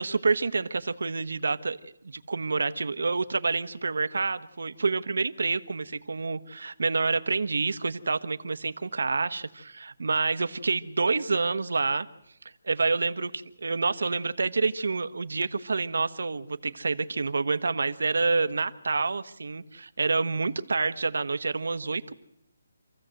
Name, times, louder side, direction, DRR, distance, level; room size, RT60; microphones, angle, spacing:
voice 1, 0.0-12.1 12.7-22.1, right 4 dB, 75° right, 12 dB, 1.2 m, -28 dB
27.0 x 15.0 x 7.8 m, 0.80 s
hypercardioid pair, 170°, 0 cm